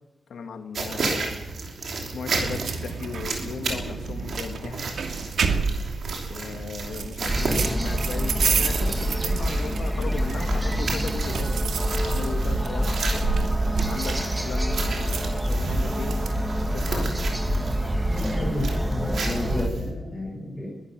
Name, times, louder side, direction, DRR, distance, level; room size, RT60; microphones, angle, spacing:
voice 1, 0.3-1.3 2.0-4.9 6.3-11.6 12.0-13.3 13.9-16.3 16.7-17.2, left 5 dB, 85° left, 5 dB, 2.4 m, -36 dB
sound 1, 0.7-19.9, right 3 dB, 60° right, 5.5 m, -33 dB
sound 2, 2.3-16.4, right 5 dB, 75° right, 2.3 m, -31 dB
sound 3, 7.3-19.7, equal, 10° right, 1.5 m, -26 dB
voice 2, 18.1-20.7, left 1 dB, 15° left, -3 dB, 6.4 m, -31 dB
23.0 x 15.5 x 7.8 m, 1.1 s
wide cardioid pair, 160°, 0 cm